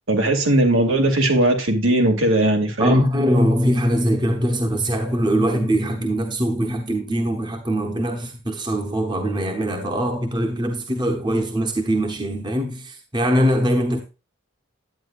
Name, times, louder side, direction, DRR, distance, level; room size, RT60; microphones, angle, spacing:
voice 1, 0.1-3.1, right 1 dB, 70° right, 2.8 m, -18 dB
voice 2, 2.8-14.0, equal, 20° right, 1.1 m, -22 dB
10.5 x 9.0 x 2.5 m
head